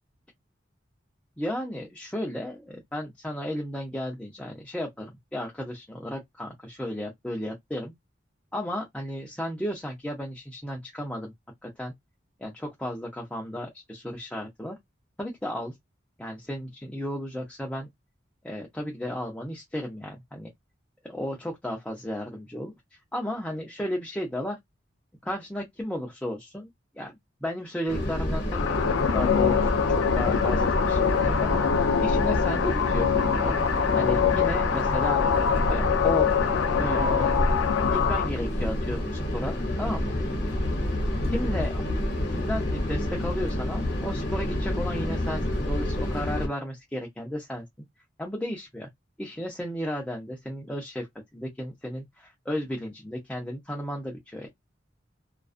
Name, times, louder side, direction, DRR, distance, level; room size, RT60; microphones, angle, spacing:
voice 1, 1.4-7.9 8.5-11.3 11.6-11.9 12.4-14.8 15.2-15.7 16.2-17.9 18.4-20.5 21.0-22.7 23.1-24.6 25.2-26.7 26.9-31.6 32.0-33.6 33.9-35.2 35.7-36.3 36.8-37.3 37.9-40.2 41.3-41.8 42.3-47.6 48.2-48.9 49.2-51.1 51.3-54.5, equal, 5° left, 0.5 m, -34 dB
sound 1, 27.9-46.5, left 1 dB, 55° left, 1.0 m, -28 dB
sound 2, 28.5-38.3, left 7 dB, 90° left, 0.4 m, -24 dB
2.4 x 2.3 x 2.4 m
head